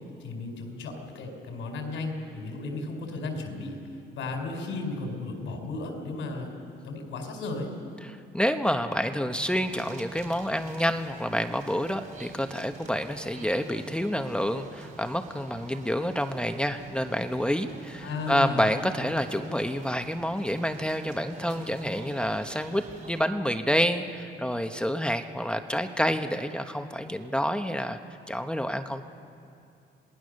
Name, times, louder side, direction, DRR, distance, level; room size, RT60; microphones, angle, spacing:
voice 1, 0.2-3.7 4.1-6.5 6.8-7.7 18.0-18.6, left 3 dB, 85° left, 3 dB, 4.6 m, -34 dB
voice 2, 8.0-28.0 28.3-29.0, equal, 5° left, 7 dB, 1.1 m, -28 dB
sound 1, 9.3-23.2, right 3 dB, 40° right, 4.0 m, -47 dB
28.0 x 19.0 x 6.6 m, 2.6 s
cardioid pair, 90°, 20 cm